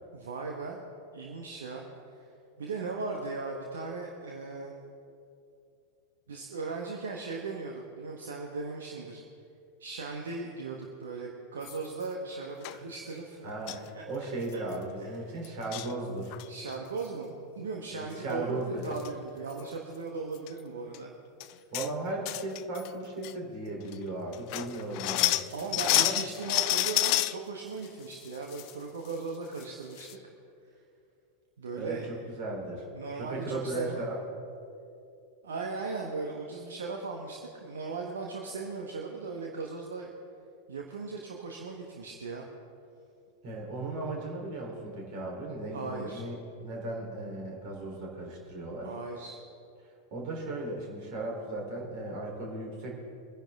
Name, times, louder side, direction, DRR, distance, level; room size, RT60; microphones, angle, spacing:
voice 1, 0.1-0.8 1.1-1.8 2.1-2.2 2.6-4.7 6.3-9.2 9.8-14.0 14.5-14.6 15.0-15.3 16.5-21.1 21.5-21.6 25.5-30.2 31.6-32.1 32.9-34.1 35.4-40.1 40.7-42.5 45.7-46.2 48.8-49.4, right 4 dB, 65° right, 0 dB, 1.4 m, -38 dB
sound 1, 11.6-12.0 12.6-12.8 13.7-13.9 14.2-14.3 14.5-14.7 15.4-15.9 16.3-16.7 18.5-18.6 18.8-19.1 19.5-19.6 20.3-20.5 20.9-21.0 21.4-21.9 22.2-22.9 23.2-23.3 23.9-24.0 24.3-27.4 27.8-28.7 29.0-29.1 29.6-29.7 30.0-30.1, left 16 dB, 45° left, 0.4 m, -29 dB
voice 2, 13.4-16.4 17.9-18.9 21.7-25.5 25.9-26.1 31.8-32.9 33.2-34.2 43.4-48.9 50.1-53.0, right 2 dB, 45° right, -1 dB, 3.9 m, -36 dB
24.5 x 10.5 x 3.7 m, 2.6 s
figure-of-eight pair, 90°, 0 cm